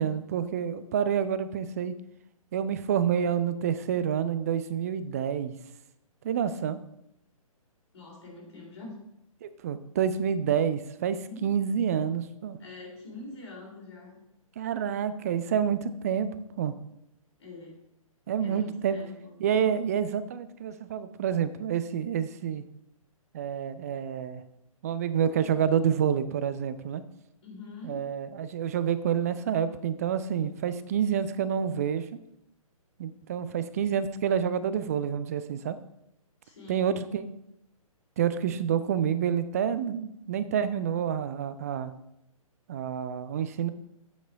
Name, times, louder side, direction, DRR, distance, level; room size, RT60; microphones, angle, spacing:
voice 1, 0.0-1.9 2.5-5.5 6.2-6.8 9.4-12.6 14.6-16.7 18.3-19.0 19.4-22.6 23.3-24.4 24.8-27.0 27.8-32.0 33.0-35.8 36.7-37.4 38.2-41.9 42.7-43.7, right 8 dB, 25° right, 13 dB, 0.4 m, -28 dB
voice 2, 7.9-9.0 11.0-11.5 12.6-14.2 17.4-17.8 18.4-19.3 27.4-28.0 36.4-37.0, left 2 dB, 50° left, -2 dB, 3.7 m, -45 dB
8.1 x 6.0 x 5.0 m, 0.81 s
figure-of-eight pair, 130°, 18 cm